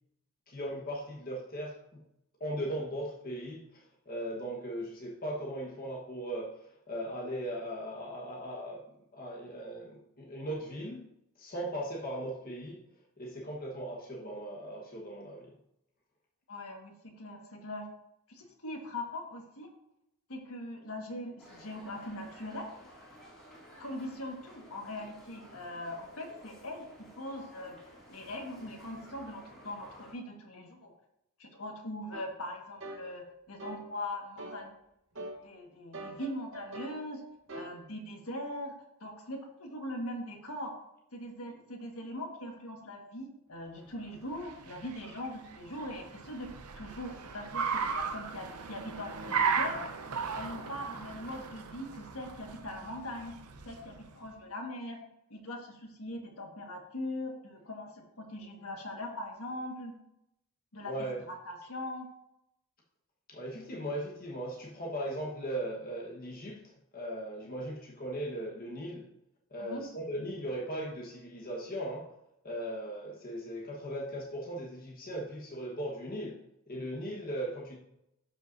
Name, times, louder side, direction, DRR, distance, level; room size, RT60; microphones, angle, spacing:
voice 1, 0.5-2.0 2.4-6.6 6.9-8.8 9.1-11.1 11.4-12.8 13.2-15.5 60.8-61.2 63.3-69.1 69.5-72.1 72.4-76.4 76.7-77.8, right 1 dB, 40° left, -2 dB, 1.3 m, -38 dB
voice 2, 16.5-17.9 18.3-19.7 20.3-22.7 23.8-26.9 27.2-27.8 28.1-30.9 31.4-34.7 35.4-37.2 37.5-38.7 39.0-40.7 41.1-46.5 46.7-49.8 50.3-53.3 53.6-55.0 55.3-59.9 60.7-60.9 61.3-62.1 69.6-69.8 70.2-70.3, left 1 dB, 75° left, 2 dB, 1.6 m, -41 dB
sound 1, 21.4-30.1, equal, ahead, 2.4 m, -54 dB
sound 2, 32.1-32.3 32.8-33.0 33.6-33.8 34.4-34.6 35.2-35.4 35.9-37.0 37.5-37.7, right 2 dB, 55° right, 1.1 m, -43 dB
Car, 44.0-54.2, right 5 dB, 85° right, 0.7 m, -36 dB
12.0 x 5.5 x 2.6 m, 0.83 s
head